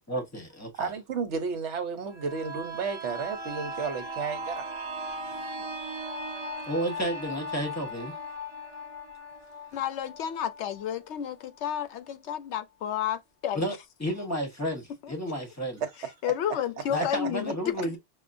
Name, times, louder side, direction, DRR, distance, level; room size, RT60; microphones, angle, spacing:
voice 1, 0.0-0.7 5.3-5.4 6.7-8.1 13.5-13.7 14.0-15.8 16.9-18.0, equal, 15° left, 1.0 m, -31 dB
voice 2, 0.8-4.6 15.8-15.9, right 5 dB, 70° right, 1.1 m, -32 dB
sound 1, 2.1-11.7 12.1-12.2, right 1 dB, 25° right, 1.0 m, -38 dB
voice 3, 9.7-13.6 15.0-15.1 16.2-17.7, left 10 dB, 75° left, 0.9 m, -31 dB
5.6 x 2.2 x 2.5 m
omnidirectional pair, 1.2 m